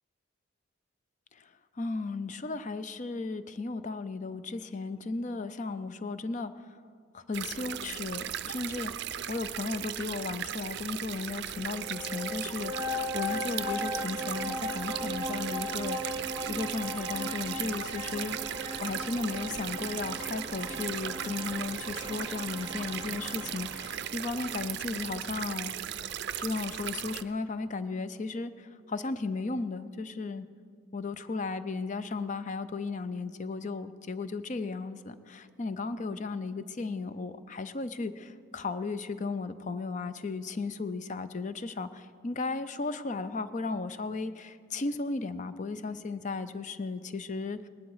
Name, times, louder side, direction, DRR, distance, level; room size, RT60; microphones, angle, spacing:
voice 1, 1.3-6.8 7.1-18.4 18.8-25.7 26.4-30.5 30.9-47.7, left 3 dB, 35° left, 13 dB, 0.5 m, -35 dB
sound 1, 7.3-27.2, right 10 dB, 55° right, 0.4 m, -37 dB
sound 2, 11.5-24.3, left 1 dB, 25° right, 0.8 m, -38 dB
19.0 x 12.0 x 4.8 m, 2.2 s
head